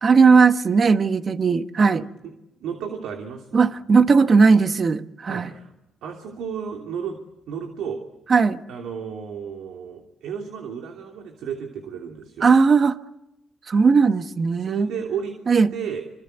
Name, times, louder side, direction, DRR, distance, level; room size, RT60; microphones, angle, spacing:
voice 1, 0.0-2.0 3.5-5.5 8.3-8.6 12.4-13.0 13.7-14.9 15.5-15.7, right 5 dB, 40° right, 1.3 m, -17 dB
voice 2, 2.6-3.6 5.2-5.7 6.0-7.2 7.5-8.0 8.7-12.5 14.6-15.3 15.7-16.0, right 7 dB, 85° right, 3.0 m, -33 dB
26.5 x 25.5 x 8.1 m
cardioid pair, 90°, 0 cm